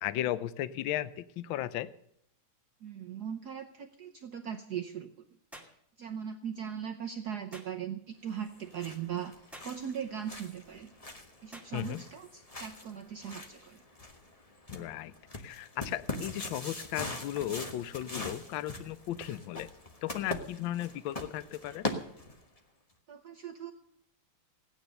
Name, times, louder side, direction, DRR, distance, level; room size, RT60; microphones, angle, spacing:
voice 1, 0.0-1.9 11.7-12.0 14.7-15.1 15.4-19.7 20.0-21.9, left 13 dB, 70° left, 15 dB, 1.4 m, -35 dB
voice 2, 2.8-5.1 6.0-10.9 11.4-13.8 23.1-23.7, right 8 dB, 60° right, 3 dB, 1.2 m, -39 dB
sound 1, 5.5-5.8 7.5-7.7 9.5-9.8 11.5-11.7, right 1 dB, ahead, 2.1 m, -49 dB
sound 2, 8.4-22.6, left 2 dB, 20° left, 1.0 m, -42 dB
16.0 x 9.5 x 6.6 m, 0.71 s
omnidirectional pair, 2.4 m